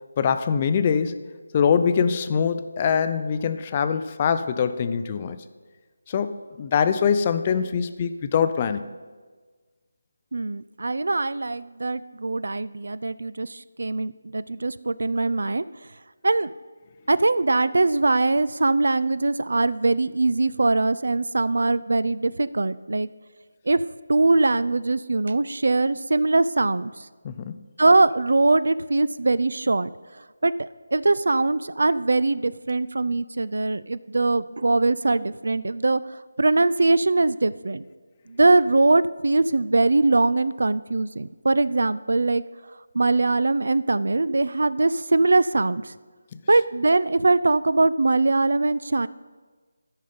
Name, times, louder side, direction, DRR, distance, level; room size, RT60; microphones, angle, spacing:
voice 1, 0.2-5.4 6.1-8.8 27.2-27.6 46.3-46.4, left 7 dB, 20° left, 10 dB, 0.4 m, -23 dB
voice 2, 10.3-15.7 16.2-16.5 17.1-23.1 23.7-23.8 24.1-27.1 27.8-29.9 30.4-36.0 36.4-37.8 38.3-42.4 42.9-45.9 46.5-49.1, right 2 dB, 70° right, 16 dB, 0.3 m, -22 dB
13.0 x 5.5 x 5.2 m, 1.4 s
figure-of-eight pair, 170°, 0 cm